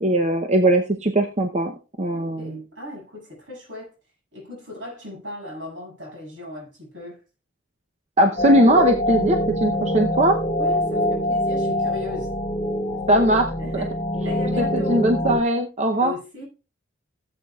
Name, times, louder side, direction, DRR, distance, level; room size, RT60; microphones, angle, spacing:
voice 1, 0.0-2.6 8.2-10.4 13.1-13.5 14.6-16.1, right 1 dB, 35° right, 0.8 m, -20 dB
voice 2, 2.1-3.9 4.3-7.2 10.4-12.3 13.6-15.0 16.0-16.5, left 2 dB, 70° right, 6.7 m, -37 dB
sound 1, 8.4-15.4, left 1 dB, 25° left, 0.8 m, -24 dB
16.5 x 8.0 x 2.4 m
head